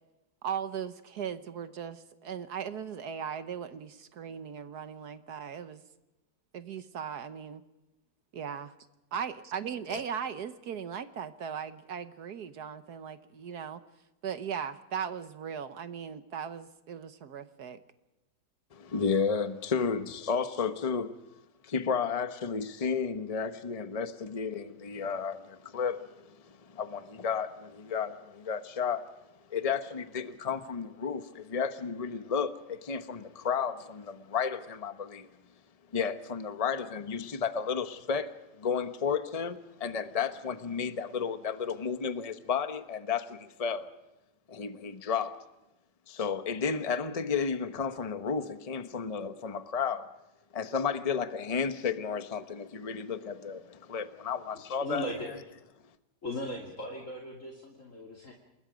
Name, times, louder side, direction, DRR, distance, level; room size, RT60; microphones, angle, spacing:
voice 1, 0.4-5.8 6.5-7.6 8.3-8.7 9.1-13.8 14.2-17.8, right 7 dB, 70° right, 11 dB, 1.5 m, -38 dB
voice 2, 18.7-21.2 21.6-29.1 29.5-35.3 35.9-43.9 44.5-45.4 46.1-50.1 50.5-55.1, left 6 dB, 25° left, 9 dB, 1.0 m, -32 dB
voice 3, 54.7-55.3 56.2-58.3, left 1 dB, 45° left, -1 dB, 2.9 m, -37 dB
28.0 x 21.0 x 5.1 m, 0.94 s
omnidirectional pair, 1.8 m